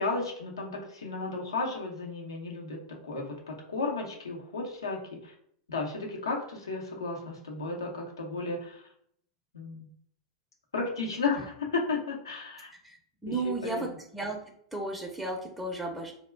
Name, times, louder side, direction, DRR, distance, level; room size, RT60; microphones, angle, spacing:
voice 1, 0.0-5.3 5.7-8.8 9.5-9.9 10.7-12.7 13.3-13.8, left 3 dB, 90° left, 0 dB, 0.8 m, -34 dB
voice 2, 13.2-14.4 14.7-16.1, right 2 dB, 5° right, 0 dB, 0.5 m, -34 dB
2.3 x 2.1 x 3.2 m, 0.67 s
hypercardioid pair, 100°, 2 cm